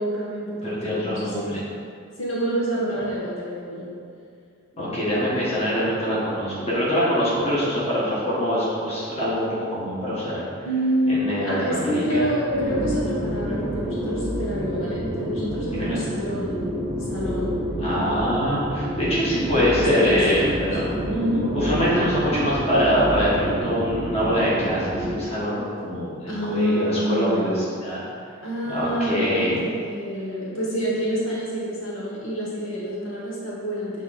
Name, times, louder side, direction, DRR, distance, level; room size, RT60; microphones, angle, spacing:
voice 1, 0.0-1.4 2.2-3.9 10.6-16.6 17.1-17.5 19.6-20.6 21.1-21.5 26.3-27.6 28.4-34.0, equal, 75° left, -6 dB, 1.4 m, -27 dB
voice 2, 0.6-1.6 4.8-10.4 11.0-12.3 15.7-16.0 17.8-20.9 21.5-28.0 28.6-29.6, equal, 30° left, -8 dB, 1.5 m, -24 dB
sound 1, 12.5-25.2, equal, 10° right, 1.1 m, -28 dB
7.0 x 3.8 x 4.1 m, 2.3 s
head